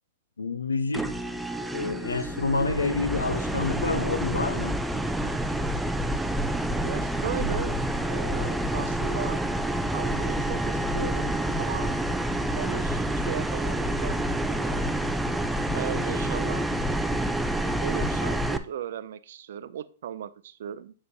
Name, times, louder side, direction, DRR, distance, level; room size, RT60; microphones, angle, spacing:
voice 1, 0.4-1.1 1.7-4.8, left 3 dB, 85° left, 0.7 m, -28 dB
sound 1, 0.9-18.6, right 1 dB, 5° right, 0.4 m, -28 dB
voice 2, 6.8-7.8 8.1-9.4 9.9-12.0 12.5-14.9 15.7-16.7 17.6-20.9, right 10 dB, 65° right, 0.5 m, -37 dB
8.8 x 5.0 x 2.7 m
hypercardioid pair, 110°, 0 cm